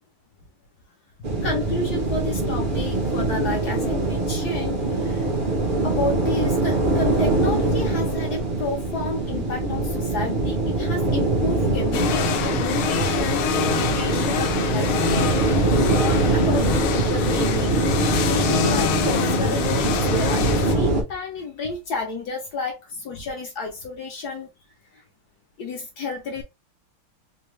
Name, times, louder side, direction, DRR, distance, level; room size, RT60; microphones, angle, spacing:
sound 1, 1.2-21.0, right 2 dB, 50° right, 0.6 m, -23 dB
voice 1, 1.4-5.3 5.8-17.7 18.2-24.5 24.9-25.0 25.6-26.4, left 3 dB, 60° left, 1.1 m, -31 dB
sound 2, 11.9-20.8, left 10 dB, 80° left, 1.5 m, -26 dB
4.3 x 2.2 x 3.1 m
omnidirectional pair, 2.3 m